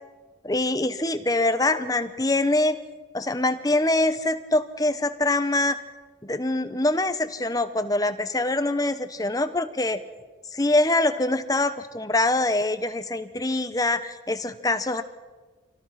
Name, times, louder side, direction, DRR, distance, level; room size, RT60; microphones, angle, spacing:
voice 1, 0.4-2.8 3.1-5.8 6.2-10.0 10.5-15.0, left 2 dB, 20° left, 10 dB, 0.9 m, -24 dB
25.5 x 17.5 x 5.9 m, 1.3 s
head